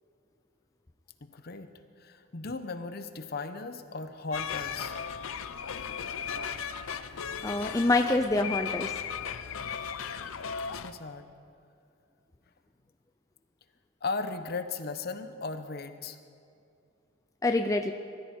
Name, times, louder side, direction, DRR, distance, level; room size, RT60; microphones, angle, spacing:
voice 1, 1.2-1.7 2.0-4.9 10.7-11.3 14.0-16.2, left 3 dB, 50° left, 9 dB, 0.8 m, -36 dB
sound 1, 4.3-10.9, left 7 dB, 75° left, 0.6 m, -36 dB
voice 2, 7.4-8.9 17.4-17.9, left 2 dB, 15° left, 5 dB, 0.4 m, -26 dB
21.0 x 13.5 x 4.4 m, 2.5 s
head